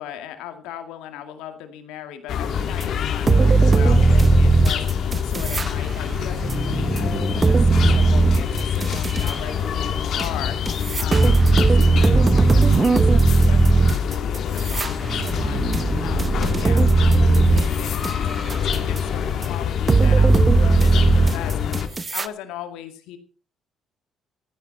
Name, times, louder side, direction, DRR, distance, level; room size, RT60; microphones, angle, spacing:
voice 1, 0.0-23.2, left 10 dB, 90° left, 7 dB, 2.1 m, -38 dB
sound 1, 2.3-21.9, left 8 dB, 65° left, 2.0 m, -26 dB
sound 2, 2.8-2.9 3.3-5.7 6.0-9.3 10.2-10.3 10.7-18.1 18.5-19.0 19.4-19.5 19.9-22.3, right 3 dB, 30° right, 0.9 m, -18 dB
14.0 x 9.9 x 5.4 m, 0.38 s
supercardioid pair, 75°, 0 cm